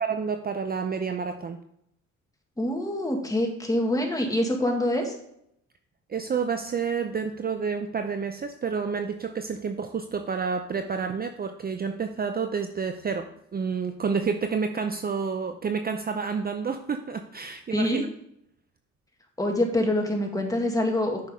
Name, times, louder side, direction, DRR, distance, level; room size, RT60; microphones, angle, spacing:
voice 1, 0.0-1.6 6.1-18.1, right 5 dB, 30° right, 7 dB, 0.6 m, -29 dB
voice 2, 2.6-5.2 17.7-18.0 19.4-21.3, left 1 dB, 10° left, 2 dB, 1.9 m, -25 dB
9.2 x 6.0 x 3.6 m, 0.75 s
cardioid pair, 90°, 30 cm